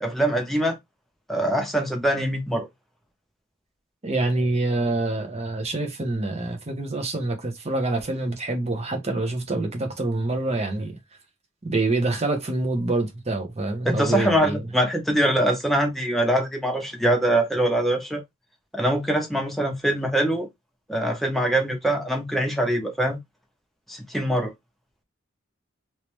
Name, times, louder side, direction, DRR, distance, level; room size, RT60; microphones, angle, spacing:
voice 1, 0.0-0.8 1.3-2.7 13.8-18.2 18.7-20.5 20.9-23.2 23.9-24.5, right 1 dB, ahead, 0.8 m, -23 dB
voice 2, 4.0-11.0 11.6-14.6, right 2 dB, 30° right, 1.0 m, -26 dB
3.1 x 3.0 x 3.1 m
head